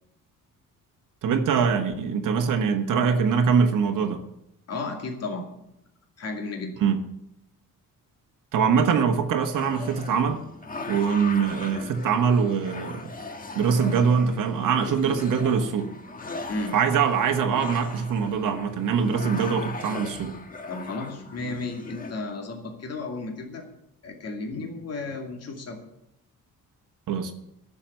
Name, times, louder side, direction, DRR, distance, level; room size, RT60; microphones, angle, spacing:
voice 1, 1.2-4.2 6.8-7.0 8.5-10.4 10.9-13.1 13.5-15.9 16.7-20.4 27.1-27.3, right 6 dB, 65° right, 5 dB, 1.3 m, -23 dB
voice 2, 4.7-5.4 6.2-6.7 16.5-16.8 20.7-23.6 24.0-25.8, left 3 dB, 45° left, 2 dB, 2.5 m, -33 dB
sound 1, 9.5-22.1, left 3 dB, 25° left, 1.4 m, -39 dB
11.5 x 7.0 x 9.2 m, 0.84 s
cardioid pair, 135°, 34 cm